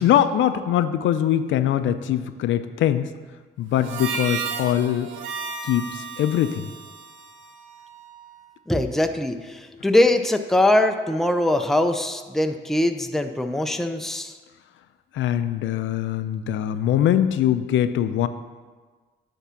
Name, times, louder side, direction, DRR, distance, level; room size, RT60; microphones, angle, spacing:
voice 1, 0.0-3.1 3.6-5.1 5.6-6.7 15.1-18.3, left 11 dB, 75° left, 11 dB, 0.5 m, -22 dB
Harmonica, 3.8-8.4, right 5 dB, 70° right, 0.7 m, -34 dB
voice 2, 8.7-14.4, left 1 dB, ahead, 6 dB, 0.5 m, -22 dB
9.7 x 3.7 x 5.7 m, 1.4 s
cardioid pair, 90°, 20 cm